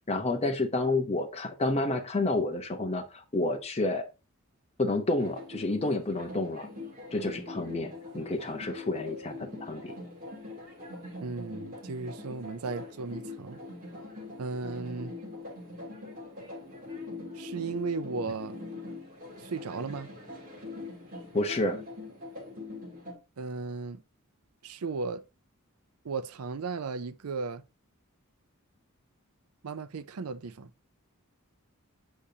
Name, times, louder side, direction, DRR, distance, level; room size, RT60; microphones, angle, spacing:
voice 1, 0.1-4.1 4.8-6.7 7.1-9.9 21.3-21.8, left 2 dB, 30° left, 0.8 m, -30 dB
sound 1, 5.2-23.1, left 2 dB, 40° right, 2.9 m, -43 dB
voice 2, 11.2-13.6 14.4-15.1 17.3-18.6 19.4-20.1 23.4-24.0 24.6-25.2 26.0-27.6 29.6-30.7, right 4 dB, 80° right, 0.5 m, -35 dB
8.4 x 5.1 x 2.8 m
head